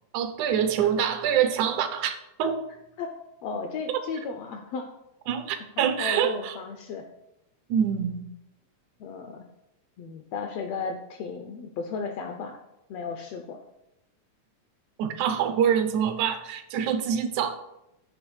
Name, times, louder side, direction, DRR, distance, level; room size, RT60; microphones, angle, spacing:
voice 1, 0.1-2.6 5.3-6.5 7.7-8.2 15.0-17.6, right 8 dB, 80° right, 2.0 m, -25 dB
voice 2, 3.4-4.9 6.0-7.0 9.0-9.5 10.0-12.6 12.9-13.6, left 5 dB, 80° left, 1.4 m, -34 dB
8.1 x 3.4 x 6.2 m
omnidirectional pair, 3.4 m